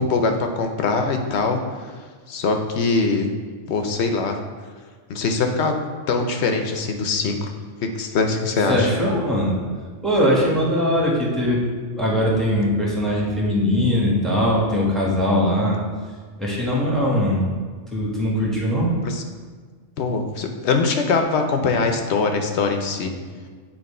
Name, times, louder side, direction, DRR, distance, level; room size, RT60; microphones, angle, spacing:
voice 1, 0.0-1.9 2.3-3.3 3.7-4.4 5.1-5.7 6.1-7.5 7.8-8.9 19.0-19.2 20.0-23.1, left 4 dB, 70° left, 5 dB, 0.9 m, -22 dB
voice 2, 8.7-9.5 10.0-11.6 12.0-15.8 16.4-17.5 17.9-18.9, equal, ahead, -5 dB, 1.1 m, -20 dB
8.8 x 2.9 x 4.2 m, 1.5 s
omnidirectional pair, 1.2 m